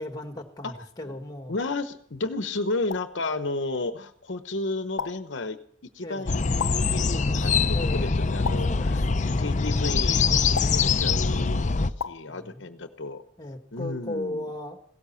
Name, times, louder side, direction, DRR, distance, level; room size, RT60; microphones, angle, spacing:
voice 1, 0.0-1.5 6.0-6.3 6.9-8.2 8.7-9.6 12.3-12.8 13.4-14.8, left 1 dB, 20° left, 6 dB, 1.6 m, -37 dB
voice 2, 1.5-9.0 9.4-11.7 12.0-13.2 13.7-14.5, left 2 dB, 65° left, 9 dB, 0.9 m, -32 dB
sound 1, 2.9-3.2 5.0-5.4 6.6-7.0 8.4-8.9 10.6-11.0 12.0-12.3, left 6 dB, 85° left, 0.5 m, -34 dB
sound 2, 6.3-11.9, left 4 dB, 40° left, 0.6 m, -23 dB
17.0 x 13.5 x 5.7 m, 0.64 s
head